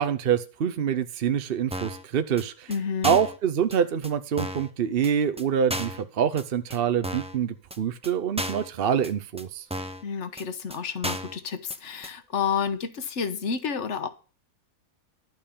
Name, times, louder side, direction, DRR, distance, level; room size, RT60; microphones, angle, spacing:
voice 1, 0.0-2.7 3.0-9.7, right 8 dB, 50° right, 0.7 m, -26 dB
sound 1, 1.7-2.0 2.4-2.5 2.7-2.8 3.0-3.4 3.7-3.8 4.0-4.1 4.4-4.7 5.0-5.1 5.4-5.5 5.7-6.0 6.4-6.5 6.7-6.8 7.0-7.4 7.7-7.8 8.0-8.1 8.4-8.7 9.0-9.1 9.4-9.5 9.7-10.0 10.4-10.5 10.7-10.8 11.0-11.4 11.7-11.8 12.0-12.1, equal, 5° right, 0.7 m, -33 dB
voice 2, 2.7-3.2 10.0-14.1, left 6 dB, 55° left, 1.4 m, -30 dB
12.0 x 5.5 x 8.5 m
omnidirectional pair, 1.6 m